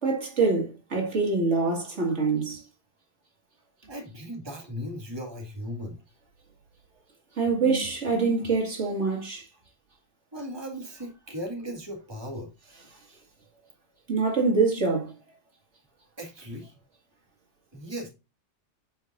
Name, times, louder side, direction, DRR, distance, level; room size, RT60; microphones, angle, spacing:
voice 1, 0.0-2.6 7.4-9.5 14.1-15.1, right 4 dB, 75° right, 2.4 m, -25 dB
voice 2, 3.9-6.0 10.3-12.5 16.2-16.7 17.7-18.1, equal, 20° right, 2.0 m, -37 dB
9.6 x 5.4 x 2.6 m
omnidirectional pair, 1.2 m